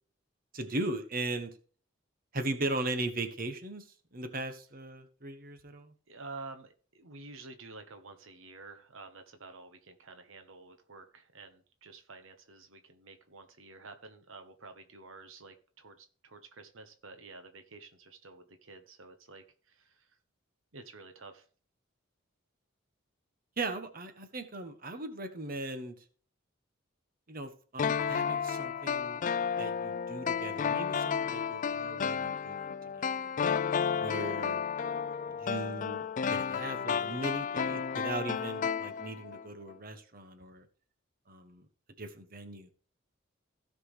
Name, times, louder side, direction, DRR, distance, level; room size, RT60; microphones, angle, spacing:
voice 1, 0.5-1.5 2.3-3.8 4.1-5.9 23.6-25.9 27.3-29.2 29.6-33.3 33.9-34.6 35.4-40.6 41.3-41.6 42.0-42.7, right 2 dB, 45° right, 1.3 m, -38 dB
voice 2, 6.1-20.2 20.7-21.5, right 3 dB, 75° right, 1.2 m, -50 dB
sound 1, 27.8-39.4 39.7-39.8, left 7 dB, 40° left, 0.3 m, -32 dB
16.5 x 6.1 x 3.2 m
head